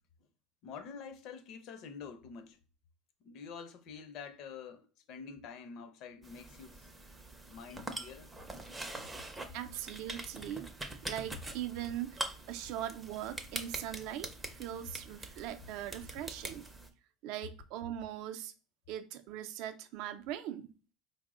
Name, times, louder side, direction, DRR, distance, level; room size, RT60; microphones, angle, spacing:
voice 1, 0.6-2.6 3.2-6.9 7.5-8.3, left 6 dB, 55° left, 0.5 m, -47 dB
sound 1, 6.2-16.9, right 2 dB, 10° right, 0.4 m, -44 dB
voice 2, 9.5-12.2 12.5-16.7 17.2-18.5 18.9-20.7, right 11 dB, 65° right, 0.4 m, -40 dB
4.3 x 2.0 x 3.6 m
cardioid pair, 145°, 0 cm